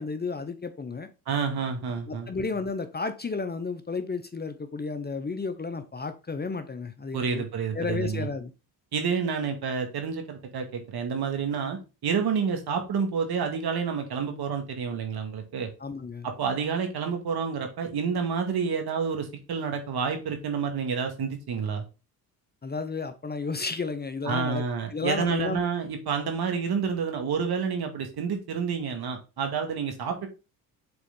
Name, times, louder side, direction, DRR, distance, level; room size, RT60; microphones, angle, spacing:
voice 1, 0.0-1.1 2.1-7.5 7.7-8.5 15.8-16.3 22.6-24.6 24.9-25.7, left 4 dB, 25° left, 0.8 m, -32 dB
voice 2, 1.3-2.3 7.1-8.3 8.9-15.7 16.2-21.8 24.3-30.3, right 6 dB, 60° right, 1.9 m, -29 dB
7.0 x 3.8 x 3.8 m
supercardioid pair, 70°, 43 cm